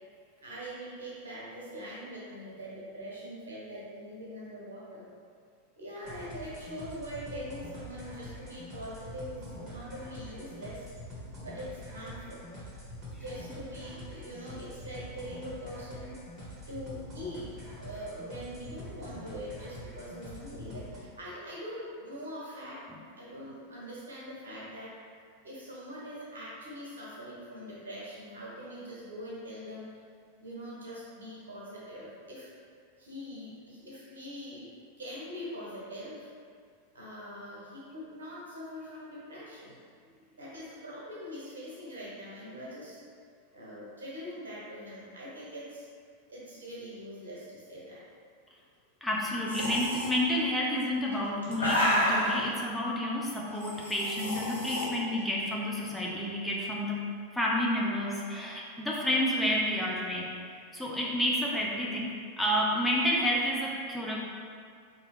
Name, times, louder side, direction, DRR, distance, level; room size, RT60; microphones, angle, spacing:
voice 1, 0.4-5.1 5.8-10.9 11.4-12.4 13.1-16.1 16.7-17.5 17.8-22.8 23.2-25.0 25.4-29.9 30.4-32.5 33.0-34.7 35.0-36.3 36.9-39.8 40.4-43.0 43.5-45.8 46.3-48.0, equal, 70° right, -7 dB, 1.4 m, -43 dB
sound 1, 6.1-21.0, equal, 30° right, 1.5 m, -45 dB
voice 2, 49.0-57.1 57.3-60.3 60.7-64.2, left 1 dB, 5° left, -4 dB, 0.6 m, -30 dB
sound 2, 49.5-50.1 51.0-52.4 53.5-54.8, equal, 80° left, 0.9 m, -29 dB
4.9 x 3.0 x 3.1 m, 2.2 s
figure-of-eight pair, 90°, 0 cm